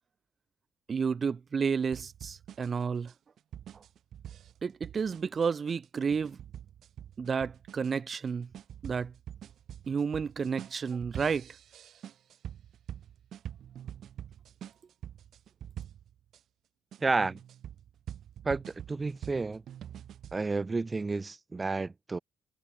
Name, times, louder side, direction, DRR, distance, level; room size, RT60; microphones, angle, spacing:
voice 1, 0.9-3.1 3.7-3.8 4.6-6.4 7.2-8.5 8.8-9.1 9.9-11.5, right 6 dB, 40° right, 0.4 m, -31 dB
sound 1, 1.9-16.4 16.9-20.4, right 10 dB, 70° right, 2.9 m, -46 dB
voice 2, 17.0-17.4 18.4-19.6 20.3-22.2, right 3 dB, 25° right, 0.8 m, -31 dB
cardioid pair, 90°, 0 cm